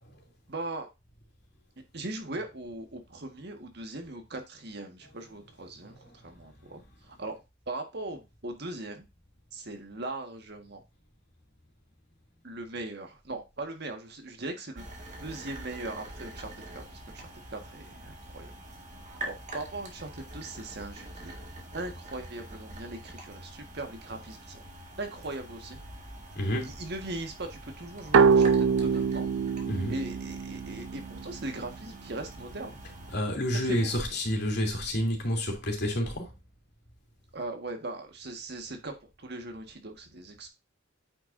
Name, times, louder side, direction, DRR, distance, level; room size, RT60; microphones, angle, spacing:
voice 1, 0.5-0.9 1.9-7.4 7.7-9.0 9.5-10.8 12.4-14.8 15.2-18.5 19.1-21.3 21.7-24.6 25.0-25.8 26.6-29.3 29.9-32.8 33.6-34.1 37.3-40.5, right 2 dB, 60° right, 1.5 m, -39 dB
voice 2, 5.8-6.2 26.3-26.8 29.7-29.9 33.1-36.3, equal, 60° left, 2.8 m, -30 dB
sound 1, 14.8-33.2, right 2 dB, 40° right, 1.8 m, -44 dB
sound 2, 28.1-31.6, right 5 dB, 90° right, 0.4 m, -24 dB
8.9 x 5.9 x 2.6 m
head